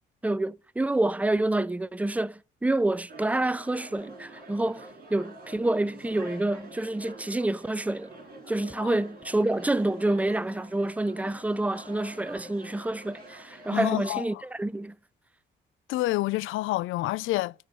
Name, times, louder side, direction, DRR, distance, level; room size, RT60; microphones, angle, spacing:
voice 1, 0.2-8.1 8.5-15.0, right 2 dB, 5° right, 0.4 m, -28 dB
sound 1, 3.1-14.1, right 2 dB, 50° right, 4.5 m, -47 dB
voice 2, 13.7-14.4 15.9-17.5, left 18 dB, 85° left, 0.4 m, -28 dB
13.0 x 4.5 x 7.4 m
cardioid pair, 90°, 20 cm